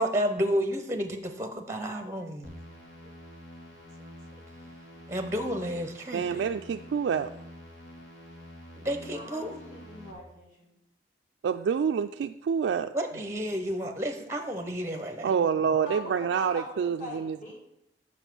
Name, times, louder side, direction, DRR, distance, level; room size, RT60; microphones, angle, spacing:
voice 1, 0.0-2.5 5.1-6.4 8.8-9.6 12.9-15.3 15.6-15.7, equal, 15° right, 7 dB, 0.6 m, -31 dB
sound 1, 2.4-10.1, left 1 dB, 90° left, 2.1 m, -47 dB
voice 2, 6.1-7.3 11.4-12.9 15.2-17.5, right 7 dB, 85° right, 7 dB, 0.3 m, -27 dB
voice 3, 9.1-10.8 15.6-17.5, left 1 dB, 45° left, -2 dB, 2.8 m, -42 dB
7.1 x 6.0 x 6.0 m, 0.82 s
head